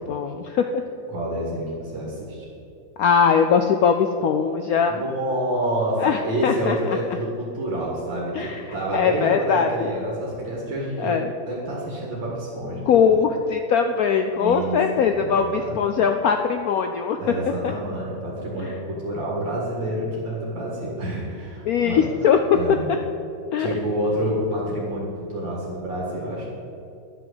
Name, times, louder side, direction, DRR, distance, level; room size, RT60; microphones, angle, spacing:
voice 1, 0.1-0.8 3.0-5.0 6.0-7.0 8.3-8.6 8.9-9.7 11.0-11.3 12.9-17.2 18.6-18.7 21.6-22.6 23.5-23.7, left 6 dB, 85° left, 6 dB, 0.8 m, -21 dB
voice 2, 1.1-2.5 4.9-13.2 14.3-15.8 17.2-22.1 22.5-22.9 23.6-26.4, right 1 dB, 70° right, -4 dB, 2.5 m, -28 dB
11.0 x 6.1 x 7.8 m, 2.7 s
omnidirectional pair, 2.2 m